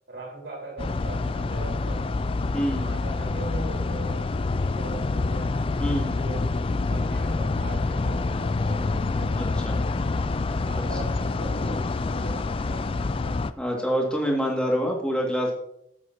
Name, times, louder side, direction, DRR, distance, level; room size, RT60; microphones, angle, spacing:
voice 1, 0.1-2.2 2.7-5.5 5.9-6.5 6.9-10.1 10.5-13.4, right 3 dB, 70° right, -2 dB, 4.4 m, -41 dB
sound 1, 0.8-13.5, left 3 dB, 30° left, 0.3 m, -27 dB
voice 2, 2.5-2.8 5.8-6.1 9.4-9.8 12.3-12.4 13.6-15.5, equal, 5° left, -2 dB, 2.0 m, -26 dB
15.0 x 8.2 x 2.8 m, 0.76 s
head